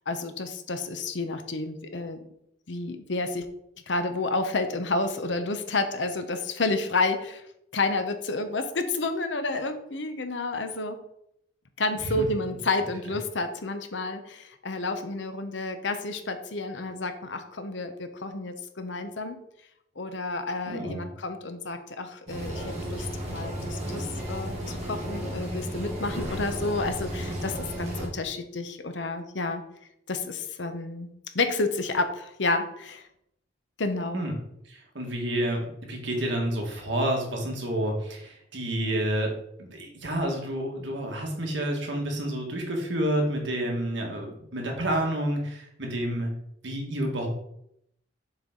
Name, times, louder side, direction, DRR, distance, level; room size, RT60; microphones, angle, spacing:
voice 1, 0.1-2.3 2.7-3.5 3.9-7.4 7.7-11.0 11.8-19.4 20.0-24.5 24.8-29.6 30.1-33.1 33.8-34.2, left 3 dB, 70° left, 8 dB, 0.9 m, -30 dB
voice 2, 20.7-21.1 34.1-34.3 34.7-39.3 39.6-46.3 46.6-47.3, right 1 dB, 75° right, 0 dB, 1.8 m, -29 dB
sound 1, 22.3-28.1, equal, 35° right, 2.0 m, -33 dB
7.1 x 4.6 x 3.9 m, 0.76 s
head